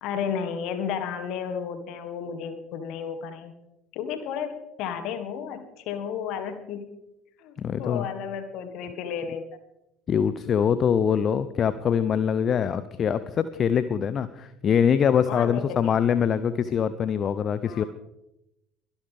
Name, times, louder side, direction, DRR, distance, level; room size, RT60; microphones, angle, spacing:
voice 1, 0.0-3.5 3.9-6.9 7.4-9.4 15.3-15.9 17.6-17.9, left 7 dB, 50° left, 9 dB, 1.7 m, -33 dB
voice 2, 7.6-8.1 10.1-17.8, left 7 dB, 35° left, 14 dB, 0.6 m, -23 dB
23.0 x 11.5 x 3.5 m, 0.89 s
figure-of-eight pair, 65°, 0 cm